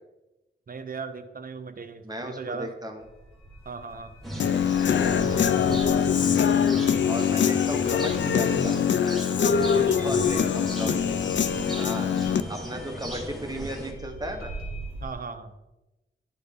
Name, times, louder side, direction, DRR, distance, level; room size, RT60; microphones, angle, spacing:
voice 1, 0.7-2.7 3.7-4.1 9.6-10.0 15.0-15.6, right 5 dB, 45° right, 9 dB, 0.6 m, -37 dB
voice 2, 2.0-3.0 5.0-5.3 7.0-8.8 9.2-11.2 11.7-12.1 12.5-14.5, equal, 20° right, 3 dB, 1.0 m, -35 dB
sound 1, 3.0-15.1, right 2 dB, 90° left, 2.2 m, -44 dB
sound 2, 4.2-13.9, equal, ahead, 1.4 m, -36 dB
Human voice / Guitar, 4.4-12.4, left 8 dB, 60° left, 0.4 m, -23 dB
12.0 x 4.0 x 3.6 m, 1.0 s
wide cardioid pair, 90°, 21 cm